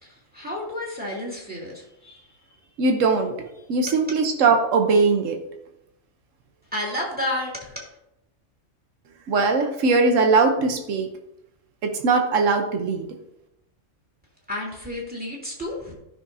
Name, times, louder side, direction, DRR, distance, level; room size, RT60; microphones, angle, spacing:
voice 1, 0.0-2.3 6.7-7.9 14.5-15.9, left 1 dB, 5° right, -4 dB, 2.7 m, -31 dB
voice 2, 2.8-5.4 9.3-11.1 11.8-13.2, right 4 dB, 80° right, 5 dB, 1.3 m, -20 dB
14.5 x 6.3 x 2.7 m, 0.85 s
omnidirectional pair, 1.3 m